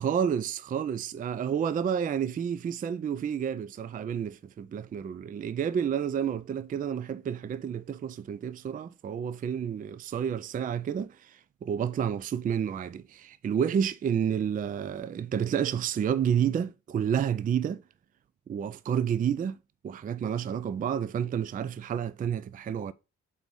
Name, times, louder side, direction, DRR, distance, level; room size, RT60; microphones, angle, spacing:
voice 1, 0.0-17.8 18.5-19.6 19.8-22.9, right 8 dB, 30° right, 0.4 m, -30 dB
4.6 x 4.1 x 5.3 m
cardioid pair, 90°, 30 cm